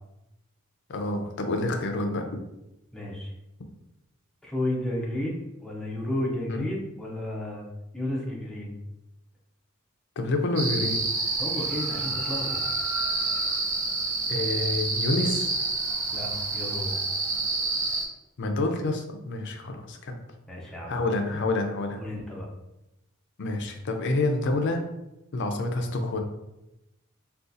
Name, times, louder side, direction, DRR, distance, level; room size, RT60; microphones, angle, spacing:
voice 1, 0.9-2.3 6.5-6.7 10.2-11.0 14.3-15.5 18.4-20.2 20.9-22.1 23.4-24.8 25.3-26.2, left 2 dB, 60° left, 4 dB, 0.5 m, -28 dB
voice 2, 2.9-3.3 4.4-7.7 7.9-8.8 11.4-12.6 16.1-16.9 20.5-21.0 22.0-22.5, left 1 dB, 5° left, -4 dB, 0.6 m, -32 dB
sound 1, 10.6-18.1, right 3 dB, 70° right, 0.6 m, -28 dB
3.7 x 2.3 x 2.6 m, 0.91 s
head